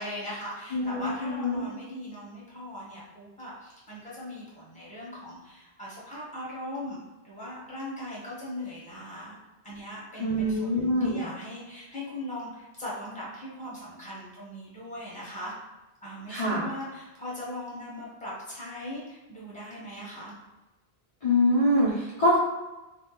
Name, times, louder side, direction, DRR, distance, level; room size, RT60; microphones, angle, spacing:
voice 1, 0.0-9.4 9.6-15.5 16.0-20.4, left 1 dB, 5° left, -7 dB, 1.0 m, -39 dB
voice 2, 0.7-1.7 10.2-11.2 16.3-16.6 21.2-22.4, left 1 dB, 35° left, -9 dB, 0.7 m, -24 dB
2.9 x 2.4 x 3.7 m, 1.1 s
omnidirectional pair, 1.1 m